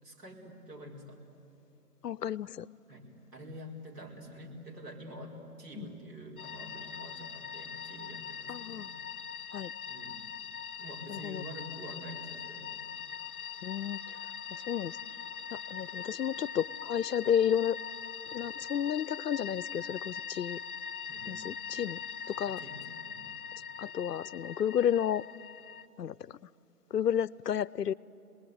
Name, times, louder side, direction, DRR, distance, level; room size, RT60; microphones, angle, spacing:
voice 1, 0.0-1.2 2.9-8.9 9.9-10.2 10.8-12.7 21.1-21.5 22.5-23.3, equal, 80° right, -1 dB, 5.2 m, -47 dB
voice 2, 2.0-2.7 5.8-5.9 8.5-8.9 9.5-9.7 11.1-11.4 13.6-15.0 15.5-17.8 18.3-20.6 21.3-22.0 22.3-22.6 23.8-25.2 26.0-26.4 26.9-27.9, left 9 dB, 80° left, 21 dB, 0.7 m, -32 dB
sound 1, 6.4-25.9, left 7 dB, 65° left, 1.0 m, -42 dB
27.0 x 20.0 x 9.5 m, 2.7 s
hypercardioid pair, 160°, 47 cm